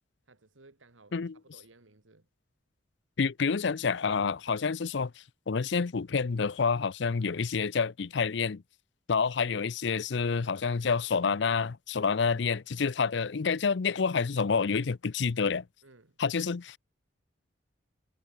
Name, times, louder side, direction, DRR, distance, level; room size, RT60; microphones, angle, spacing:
voice 1, 0.2-2.3 9.2-9.4 15.8-16.2, right 2 dB, 80° right, 2.0 m, -59 dB
voice 2, 3.2-8.6 9.1-15.6 16.2-16.8, left 5 dB, 65° left, 0.5 m, -28 dB
head